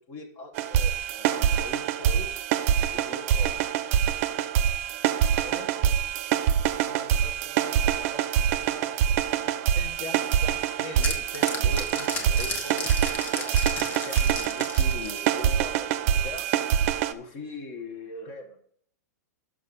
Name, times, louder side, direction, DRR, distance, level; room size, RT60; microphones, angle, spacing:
voice 1, 0.1-2.5 2.9-3.5 5.3-5.7 6.8-7.0 9.3-9.4 9.7-13.0 13.2-16.5 17.1-18.6, left 2 dB, 40° left, 4 dB, 1.1 m, -41 dB
sound 1, 0.5-17.1, right 9 dB, 50° right, 0.5 m, -25 dB
voice 2, 3.3-3.7 5.7-5.9 6.7-9.6, right 1 dB, 5° right, 2 dB, 1.7 m, -48 dB
sound 2, 10.3-15.8, left 3 dB, 20° left, 1.2 m, -35 dB
6.2 x 5.3 x 6.9 m, 0.64 s
hypercardioid pair, 145°, 9 cm